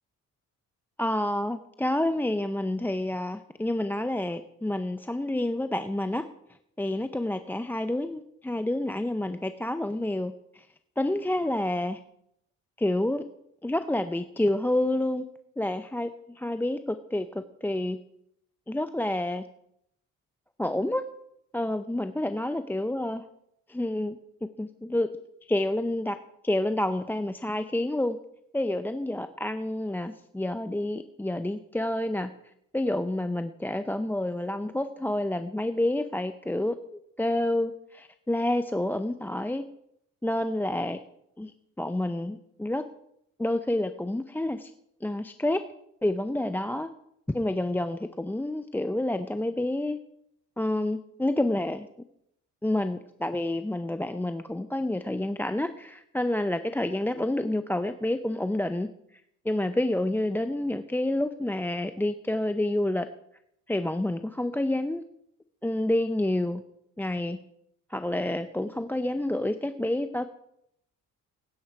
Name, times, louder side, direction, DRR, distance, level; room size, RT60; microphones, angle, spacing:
voice 1, 1.0-6.2 6.8-10.6 11.0-12.0 12.8-13.2 13.6-15.2 15.6-18.0 18.7-19.4 20.6-21.0 21.5-23.2 23.7-25.1 25.5-26.2 26.4-28.2 28.5-32.3 32.7-36.8 37.2-39.6 40.2-41.0 41.4-42.8 43.4-44.7 45.0-45.6 46.0-46.9 47.3-50.0 50.6-51.9 52.6-58.9 59.5-63.1 63.7-65.0 65.6-66.6 67.0-67.4 67.9-70.3, left 1 dB, 5° left, 9 dB, 0.6 m, -28 dB
17.0 x 9.3 x 4.7 m, 0.77 s
cardioid pair, 90°, 30 cm